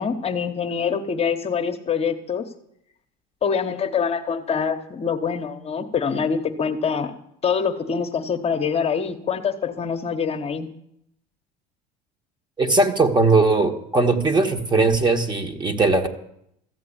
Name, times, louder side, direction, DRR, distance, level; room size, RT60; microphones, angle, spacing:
voice 1, 0.0-2.4 3.4-7.1 7.4-10.7, left 6 dB, 30° left, 5 dB, 1.1 m, -25 dB
voice 2, 12.6-16.1, right 3 dB, 20° right, 6 dB, 1.5 m, -19 dB
14.5 x 7.7 x 8.7 m, 0.76 s
supercardioid pair, 100°, 20 cm